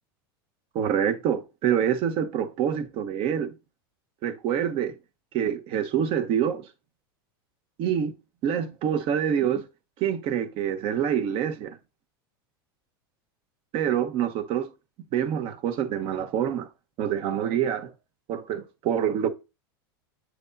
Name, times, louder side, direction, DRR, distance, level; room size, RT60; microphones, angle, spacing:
voice 1, 0.7-3.5 4.2-4.9 5.3-6.7 7.8-8.1 8.4-9.6 10.0-11.8 13.7-14.7 15.1-16.7 17.0-17.9 18.3-19.3, right 9 dB, 50° right, 1.1 m, -26 dB
8.4 x 6.4 x 2.6 m
supercardioid pair, 115°, 12 cm